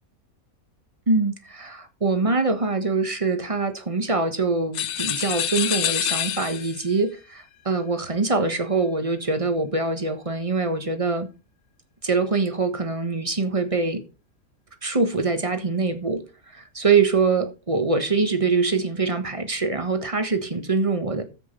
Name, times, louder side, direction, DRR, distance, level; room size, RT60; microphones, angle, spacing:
voice 1, 1.1-11.3 12.0-14.0 14.8-16.2 16.5-21.2, right 4 dB, 25° right, 1.4 m, -24 dB
sound 1, 4.7-6.9, left 10 dB, 60° left, 0.9 m, -26 dB
9.9 x 7.9 x 5.2 m
omnidirectional pair, 1.5 m